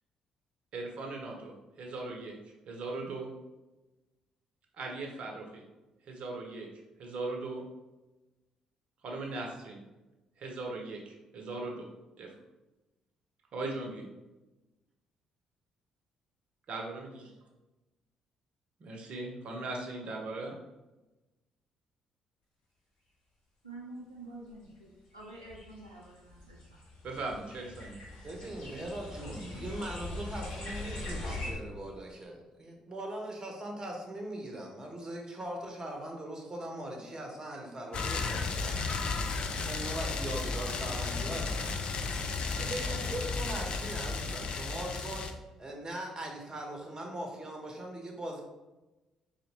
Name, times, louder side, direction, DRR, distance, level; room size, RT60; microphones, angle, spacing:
voice 1, 0.7-3.3 4.7-5.6 6.0-6.7 7.0-7.6 9.0-9.8 10.4-11.9 12.2-12.3 13.5-14.1 16.7-17.3 18.8-20.6 27.0-28.0, right 2 dB, 50° right, 1 dB, 0.7 m, -39 dB
voice 2, 23.6-24.7 25.1-26.4, right 2 dB, 85° right, -4 dB, 0.4 m, -47 dB
sound 1, 24.5-24.6 25.2-31.5, left 2 dB, 60° left, 0.9 m, -42 dB
voice 3, 28.2-39.0 39.6-41.7 42.5-45.3 45.6-48.4, right 1 dB, 25° right, 1 dB, 0.9 m, -40 dB
sound 2, 37.9-45.3, left 4 dB, 45° left, 0.4 m, -34 dB
4.1 x 2.9 x 2.8 m, 1.1 s
figure-of-eight pair, 45°, 2 cm